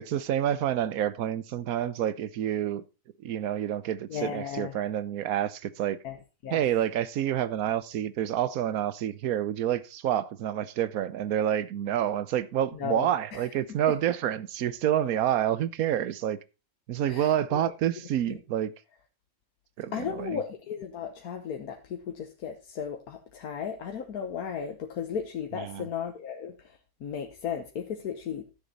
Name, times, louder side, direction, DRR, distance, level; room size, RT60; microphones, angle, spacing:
voice 1, 0.0-2.8 3.2-6.0 6.5-16.4 16.9-18.7 19.8-20.4 25.6-25.9, right 11 dB, 80° right, 1.2 m, -28 dB
voice 2, 4.1-4.8 6.0-6.2 6.4-6.6 12.7-13.5 17.1-17.7 18.3-18.4 19.9-28.5, left 7 dB, 90° left, 1.5 m, -35 dB
13.0 x 7.2 x 4.0 m
omnidirectional pair, 1.5 m